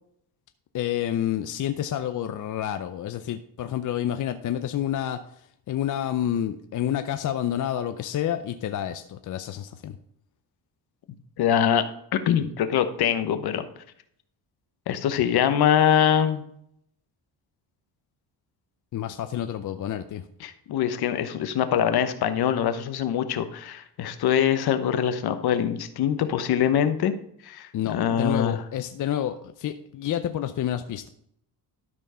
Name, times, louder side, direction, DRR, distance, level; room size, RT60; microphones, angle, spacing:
voice 1, 0.7-10.0 18.9-20.2 27.7-31.1, left 11 dB, 50° left, 9 dB, 0.6 m, -29 dB
voice 2, 11.4-11.9 12.1-13.7 14.9-16.4 20.4-27.1 27.4-28.6, left 9 dB, 65° left, 10 dB, 1.0 m, -23 dB
12.5 x 4.4 x 5.6 m, 0.70 s
cardioid pair, 120°, 41 cm